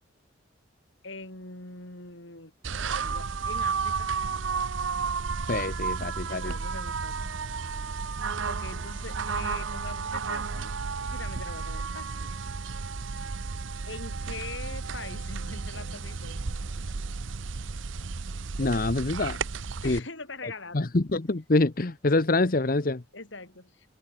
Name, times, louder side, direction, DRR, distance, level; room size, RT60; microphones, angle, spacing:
voice 1, 1.0-2.5 3.0-4.1 6.3-7.3 8.5-10.7 11.1-12.3 13.8-16.4 19.8-20.9 23.1-24.0, left 3 dB, 65° left, 5.1 m, -42 dB
sound 1, 2.6-20.0, right 5 dB, 70° right, 0.8 m, -32 dB
voice 2, 5.5-6.5 18.6-19.4 19.8-20.0 20.4-23.0, left 2 dB, 45° left, 0.8 m, -26 dB
open air
head